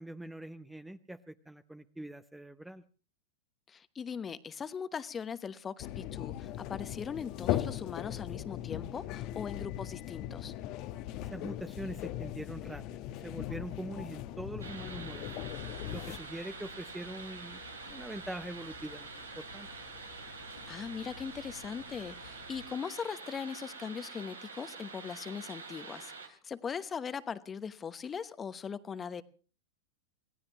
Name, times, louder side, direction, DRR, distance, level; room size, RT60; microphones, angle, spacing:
voice 1, 0.0-2.8 11.2-15.3 15.9-19.1 19.4-19.7, right 1 dB, 5° right, 11 dB, 0.8 m, -43 dB
voice 2, 3.7-10.5 20.7-29.2, left 6 dB, 20° left, 12 dB, 1.1 m, -40 dB
sound 1, 5.8-16.2, left 13 dB, 45° left, 1.1 m, -38 dB
sound 2, 14.6-26.3, right 4 dB, 85° right, 2.7 m, -47 dB
sound 3, 15.5-22.7, left 5 dB, 70° left, 2.6 m, -53 dB
26.5 x 17.5 x 3.1 m, 0.37 s
figure-of-eight pair, 95°, 0 cm